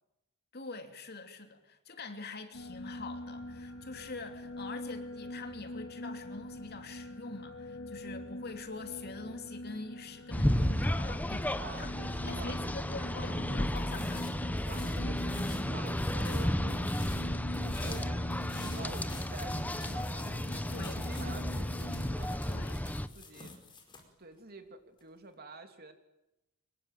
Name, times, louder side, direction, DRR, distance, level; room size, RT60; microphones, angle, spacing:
voice 1, 0.5-14.3 20.7-21.1 22.4-22.8, left 3 dB, 50° left, 2.9 m, -44 dB
sound 1, 2.5-22.2, left 1 dB, 80° left, 3.0 m, -44 dB
sound 2, 10.3-23.1, left 1 dB, 10° left, 1.0 m, -33 dB
voice 2, 11.6-12.7 14.6-17.2 17.6-23.5 24.2-25.9, right 3 dB, 50° right, 3.2 m, -48 dB
sound 3, 13.8-17.3 17.5-24.0, left 2 dB, 25° left, 5.0 m, -48 dB
25.0 x 22.5 x 9.1 m
head